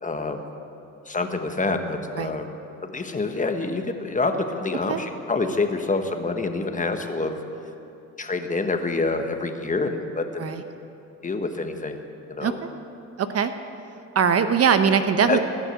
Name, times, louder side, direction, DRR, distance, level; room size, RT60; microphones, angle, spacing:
voice 1, 0.0-0.4 1.1-2.5 2.8-7.4 8.2-10.5 11.2-12.0 12.3-12.6 15.3-15.4, left 3 dB, 25° left, 6 dB, 1.3 m, -27 dB
voice 2, 13.2-13.5 14.1-15.4, right 7 dB, 50° right, 9 dB, 0.9 m, -21 dB
18.0 x 6.4 x 9.2 m, 2.9 s
supercardioid pair, 80°, 32 cm